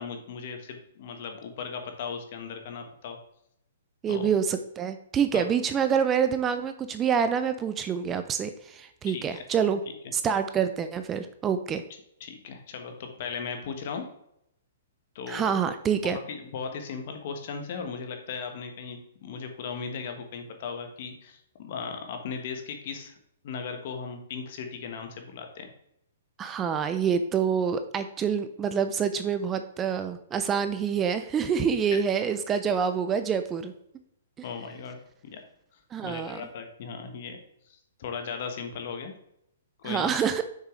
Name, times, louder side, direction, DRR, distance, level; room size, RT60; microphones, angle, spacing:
voice 1, 0.0-3.2 4.1-4.2 5.3-5.4 9.1-9.4 9.9-10.0 12.2-14.0 15.1-15.5 16.0-23.1 23.4-25.7 34.4-35.0 35.3-35.4 36.0-37.4 37.7-39.1 39.8-40.1, left 5 dB, 50° left, 5 dB, 1.2 m, -37 dB
voice 2, 4.0-9.8 10.1-11.8 15.3-16.2 26.4-33.7 35.9-36.4 39.8-40.4, right 7 dB, 15° right, 9 dB, 0.4 m, -27 dB
6.5 x 4.7 x 3.7 m, 0.76 s
hypercardioid pair, 150°, 0 cm